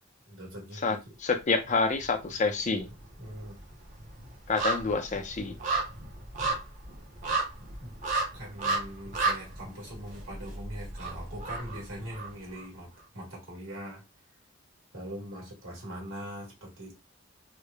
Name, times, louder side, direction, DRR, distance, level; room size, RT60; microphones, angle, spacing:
voice 1, 0.3-1.0 3.2-3.6 7.8-7.9 8.3-14.0 14.9-16.9, equal, 80° right, 1.3 m, -42 dB
voice 2, 0.8-2.9 4.5-5.6, left 4 dB, 35° left, 0.4 m, -28 dB
sound 1, 1.6-2.4 2.7-12.6 13.0-13.1, right 3 dB, 40° right, 0.7 m, -33 dB
3.1 x 2.0 x 2.2 m
head